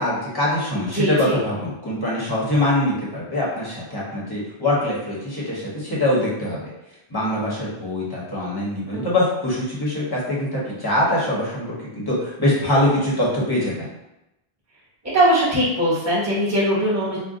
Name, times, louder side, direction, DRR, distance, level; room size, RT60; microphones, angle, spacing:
voice 1, 0.0-6.7 7.1-13.9, left 1 dB, 25° left, -6 dB, 0.8 m, -23 dB
voice 2, 0.9-1.4 8.9-9.0 15.1-17.2, right 1 dB, 15° right, -8 dB, 1.0 m, -20 dB
2.5 x 2.2 x 3.6 m, 0.91 s
omnidirectional pair, 1.1 m